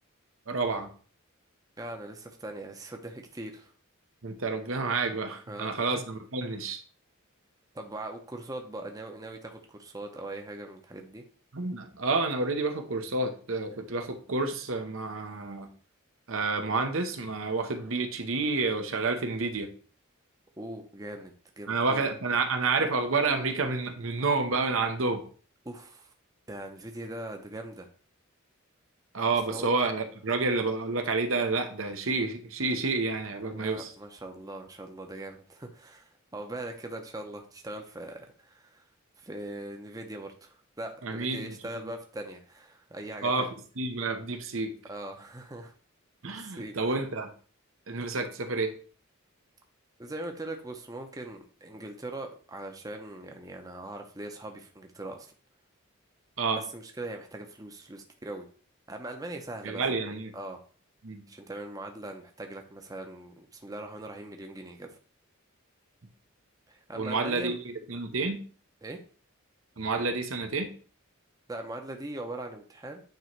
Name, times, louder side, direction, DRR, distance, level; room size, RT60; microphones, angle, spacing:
voice 1, 0.5-0.9 4.2-6.8 11.5-15.7 16.3-19.7 21.7-25.2 29.1-33.9 41.0-41.6 43.2-44.7 46.2-47.3 47.9-48.7 56.4-56.6 59.6-60.3 61.0-61.2 66.9-68.4 69.8-70.7, right 3 dB, 70° right, 6 dB, 0.9 m, -29 dB
voice 2, 1.8-3.7 5.5-6.0 7.7-11.2 20.6-22.1 25.6-26.1 26.5-27.9 29.5-29.7 33.5-38.8 39.2-43.5 44.9-45.7 46.3-46.8 50.0-55.3 56.6-58.5 58.9-59.8 60.3-60.6 61.3-65.0 66.7-67.6 68.8-69.0 71.5-73.0, right 1 dB, 15° right, 4 dB, 0.7 m, -41 dB
9.1 x 3.1 x 4.5 m, 0.41 s
head